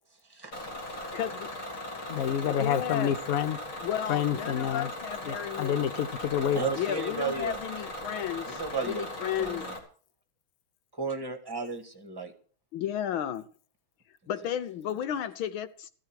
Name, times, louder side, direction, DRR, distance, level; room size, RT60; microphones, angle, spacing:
voice 1, 0.3-0.7 2.1-2.3 6.5-7.6 8.5-9.1 9.4-9.7 11.0-12.3, right 4 dB, 10° right, 1.7 m, -34 dB
Bus / Engine, 0.5-9.8, left 1 dB, 40° left, 2.9 m, -39 dB
voice 2, 1.1-1.5 2.5-3.1 3.8-5.7 6.8-9.7 12.7-13.5 14.3-15.9, left 10 dB, 75° left, 1.6 m, -33 dB
voice 3, 2.1-3.6 4.1-4.9 5.2-6.7, left 9 dB, 55° left, 1.0 m, -28 dB
14.5 x 14.0 x 4.7 m
omnidirectional pair, 2.3 m